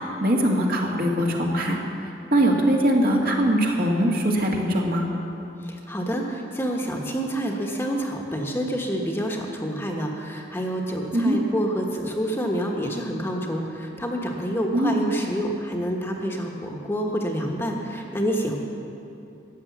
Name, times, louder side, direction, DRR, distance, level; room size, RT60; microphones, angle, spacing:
voice 1, 0.2-1.8 2.3-5.1 11.1-11.4 14.7-15.0, right 1 dB, 55° right, -1 dB, 1.8 m, -21 dB
voice 2, 5.6-18.6, equal, 15° left, 0 dB, 1.2 m, -28 dB
14.0 x 9.5 x 7.3 m, 2.7 s
head